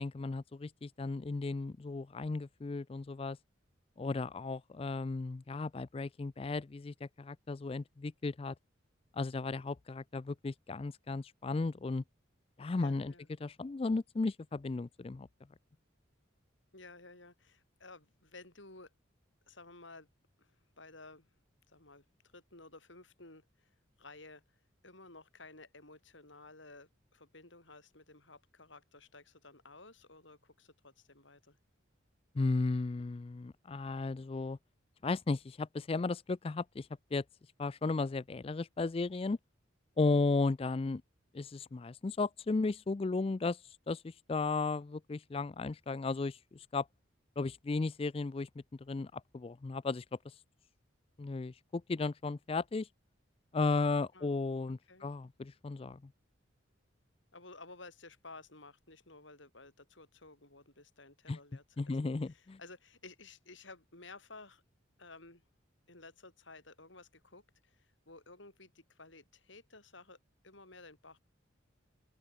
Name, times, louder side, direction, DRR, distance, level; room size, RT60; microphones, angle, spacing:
voice 1, 0.0-3.4 4.0-8.5 9.1-12.0 12.6-13.1 13.4-15.3 32.3-34.6 35.0-37.2 37.6-39.4 40.0-41.0 41.3-43.6 43.9-46.9 47.4-50.2 51.2-52.9 53.5-56.0 61.3-61.4 61.8-62.6, left 3 dB, 30° left, 0.4 m, -35 dB
voice 2, 12.8-13.3 16.7-18.9 19.5-20.1 20.4-21.3 21.7-22.0 22.3-24.6 24.8-31.6 54.1-54.3 54.7-55.1 57.3-64.6 65.0-65.4 65.9-70.2 70.4-71.2, left 3 dB, 70° left, 6.9 m, -54 dB
open air
head